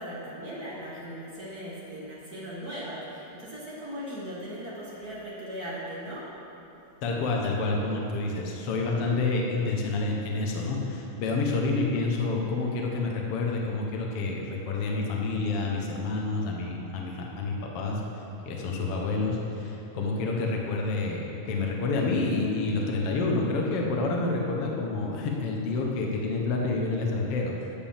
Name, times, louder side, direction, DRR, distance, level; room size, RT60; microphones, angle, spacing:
voice 1, 0.0-6.3, equal, 55° right, -7 dB, 1.0 m, -38 dB
voice 2, 7.0-18.0 18.4-27.5, left 3 dB, 75° left, -1 dB, 1.3 m, -28 dB
11.0 x 6.8 x 7.3 m, 3.0 s
omnidirectional pair, 4.4 m